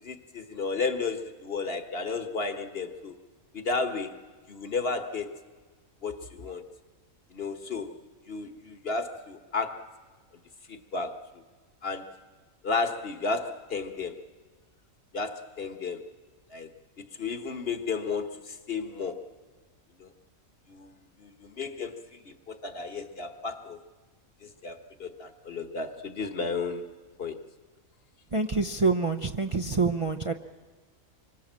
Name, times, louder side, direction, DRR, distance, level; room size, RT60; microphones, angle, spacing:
voice 1, 0.0-3.2 3.5-4.2 4.5-5.3 6.0-6.6 7.3-8.0 8.3-9.8 10.7-11.2 11.8-12.1 12.6-14.2 15.1-16.0 16.5-16.7 17.2-19.3 20.0-20.1 20.7-20.9 21.2-23.8 24.4-26.9 27.2-27.4, left 4 dB, 45° left, 8 dB, 1.5 m, -33 dB
voice 2, 28.3-30.3, right 4 dB, 30° right, 6 dB, 0.6 m, -26 dB
26.5 x 24.0 x 7.5 m, 1.4 s
omnidirectional pair, 1.4 m